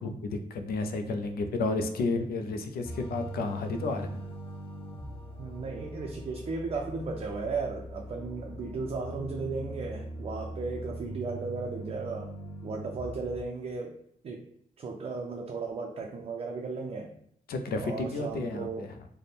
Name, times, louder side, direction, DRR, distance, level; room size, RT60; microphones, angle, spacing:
voice 1, 0.0-4.2 17.5-18.9, left 3 dB, 90° left, 6 dB, 0.5 m, -32 dB
sound 1, 2.8-13.4, right 1 dB, 35° left, 0.7 m, -41 dB
voice 2, 5.4-12.3 12.6-14.0 14.2-14.4 14.8-17.1 17.8-18.9, right 4 dB, 40° right, 0 dB, 0.4 m, -35 dB
3.4 x 2.1 x 4.0 m, 0.70 s
wide cardioid pair, 150°, 15 cm